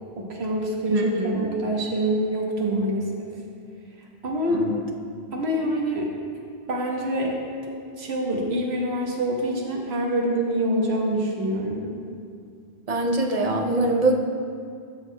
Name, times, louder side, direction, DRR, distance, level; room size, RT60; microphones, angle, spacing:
voice 1, 0.2-3.3 4.2-4.6 5.3-6.1 6.7-7.3 8.0-11.8, right 1 dB, 80° right, -1 dB, 1.4 m, -25 dB
voice 2, 0.9-1.4 4.5-4.8 12.9-14.1, right 2 dB, 40° right, 1 dB, 0.7 m, -23 dB
12.5 x 6.3 x 2.2 m, 2.2 s
omnidirectional pair, 1.1 m